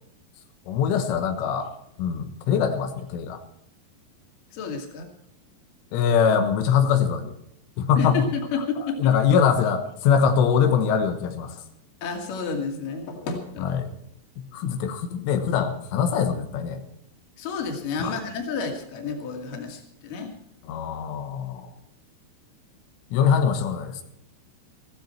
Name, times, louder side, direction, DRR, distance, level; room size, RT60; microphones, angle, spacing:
voice 1, 0.7-1.7 2.0-3.4 5.9-7.3 7.8-8.3 8.8-11.6 13.6-13.9 14.4-16.8 18.0-18.1 20.6-21.7 23.1-24.0, left 7 dB, 90° left, 6 dB, 3.8 m, -23 dB
voice 2, 4.5-5.1 8.0-9.1 12.0-13.7 17.4-20.3, left 5 dB, 50° left, 3 dB, 3.5 m, -30 dB
16.0 x 15.0 x 4.5 m, 0.75 s
omnidirectional pair, 5.5 m